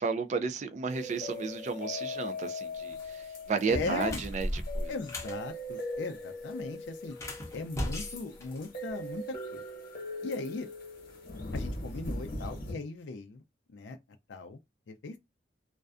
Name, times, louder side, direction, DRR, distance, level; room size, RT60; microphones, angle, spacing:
voice 1, 0.0-4.9, right 5 dB, 40° right, 0.3 m, -33 dB
sound 1, 0.9-12.7, left 1 dB, 50° left, 1.0 m, -40 dB
sound 2, 2.8-3.1 3.6-5.4 7.1-9.1, left 1 dB, 15° left, 0.6 m, -36 dB
voice 2, 3.7-4.2 4.9-7.2 7.5-9.6 10.2-10.7 11.5-13.4 13.7-14.0 14.3-14.6 14.9-15.2, left 3 dB, 70° left, 0.4 m, -38 dB
2.4 x 2.2 x 2.4 m
head